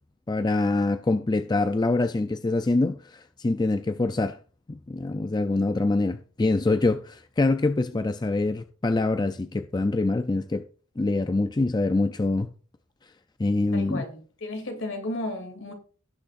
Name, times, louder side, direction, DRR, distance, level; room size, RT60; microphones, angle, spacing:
voice 1, 0.3-4.4 4.7-10.6 11.0-12.5 13.4-14.0, left 2 dB, 20° left, 0.4 m, -25 dB
voice 2, 13.7-15.7, left 1 dB, 65° left, 2.8 m, -34 dB
17.5 x 6.5 x 2.5 m
head